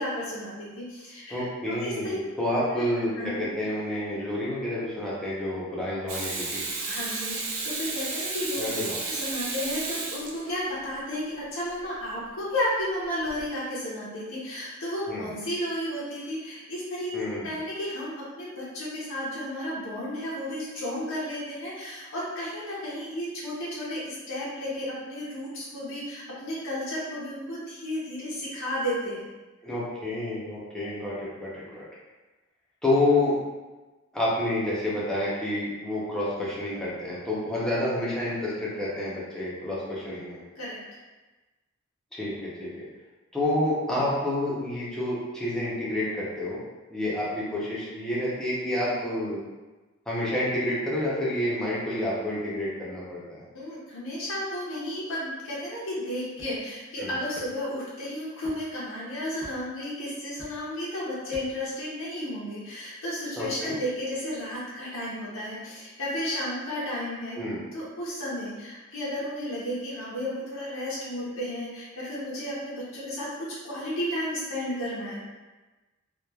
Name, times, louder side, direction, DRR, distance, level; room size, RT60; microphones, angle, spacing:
voice 1, 0.0-2.2 2.8-2.9 3.2-3.5 6.9-8.6 9.0-29.3 40.6-40.8 53.5-75.2, left 1 dB, 90° left, -7 dB, 0.7 m, -33 dB
voice 2, 1.3-6.6 8.6-9.0 15.1-15.3 17.1-17.5 29.6-31.8 32.8-33.3 34.1-40.4 42.1-42.7 43.3-46.6 46.9-49.4 50.1-53.4 57.0-57.1 63.4-63.7 67.4-67.6, left 1 dB, 5° left, -9 dB, 0.6 m, -29 dB
Water tap faucet / Sink (filling or washing), 6.1-10.9 13.3-13.4, right 3 dB, 90° right, 0.5 m, -33 dB
sound 1, 56.4-56.7 57.3-57.7 58.4-58.6 59.4-59.7 60.4-60.8 61.3-61.7, right 1 dB, 55° right, 0.9 m, -45 dB
3.0 x 2.2 x 2.3 m, 1.2 s
head